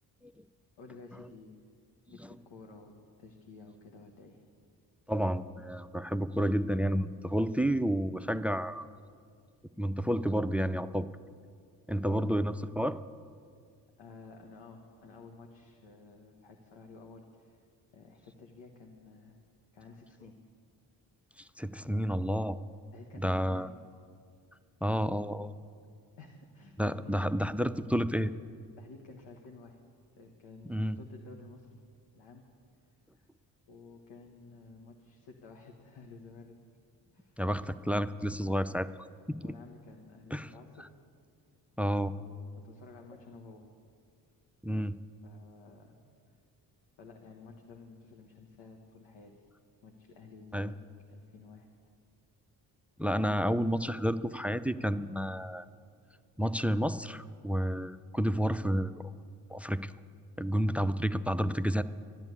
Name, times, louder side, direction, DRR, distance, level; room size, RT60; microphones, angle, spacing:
voice 1, 0.8-1.6 2.1-4.4 12.1-12.3 14.0-17.6 17.9-19.4 19.7-20.3 22.9-23.8 26.2-27.3 28.8-29.8 30.2-31.7 32.1-32.4 33.1-33.3 33.7-36.6 37.1-37.4 39.4-40.9 42.1-43.7 45.2-46.0 47.0-49.3 49.8-51.7 60.6-60.8, left 4 dB, 65° left, 2 dB, 1.6 m, -52 dB
voice 2, 5.1-8.8 9.8-11.1 11.9-13.0 21.6-22.6 23.2-23.7 24.8-25.5 26.8-28.3 30.7-31.0 37.4-38.9 39.3-39.5 40.3-40.5 41.8-42.1 44.6-45.0 50.5-50.7 53.0-55.6 56.4-58.9 59.5-59.9 60.4-61.8, equal, 5° right, 14 dB, 0.5 m, -30 dB
13.0 x 10.5 x 8.4 m, 2.2 s
hypercardioid pair, 40°, 48 cm